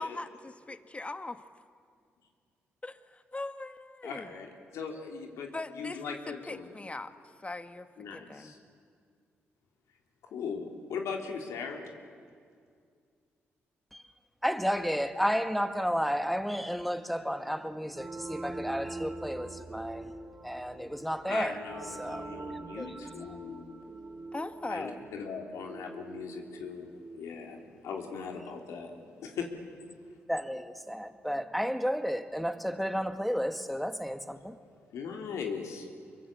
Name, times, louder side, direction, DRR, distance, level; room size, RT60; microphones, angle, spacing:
voice 1, 0.0-1.4 2.8-4.3 5.5-7.1 7.4-8.5 24.3-25.1, left 2 dB, 25° left, 1.6 m, -40 dB
voice 2, 4.0-6.7 8.0-8.6 10.3-11.8 21.3-23.7 24.7-26.9 27.1-27.6 27.8-29.5 29.8-30.2 34.9-35.9, left 5 dB, 80° left, 3.2 m, -39 dB
voice 3, 14.4-20.1 20.4-21.6 22.0-22.3 22.8-22.9 30.3-34.6, equal, ahead, 1.8 m, -32 dB
sound 1, 17.9-28.4, right 3 dB, 35° right, 3.0 m, -44 dB
25.5 x 22.5 x 8.5 m
supercardioid pair, 55°, 5 cm